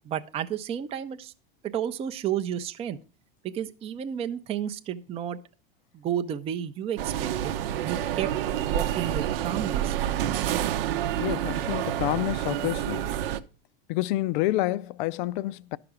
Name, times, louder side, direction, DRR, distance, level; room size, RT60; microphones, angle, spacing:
voice 1, 0.0-1.3 1.7-3.0 3.4-5.4 5.9-7.6 7.8-8.3 8.6-10.0, right 9 dB, 20° right, 0.5 m, -32 dB
sound 1, 7.0-13.4, right 11 dB, 75° right, 0.8 m, -28 dB
voice 2, 11.2-13.1 13.9-15.8, left 17 dB, 55° left, 0.5 m, -28 dB
11.5 x 5.9 x 4.9 m
supercardioid pair, 140°, 29 cm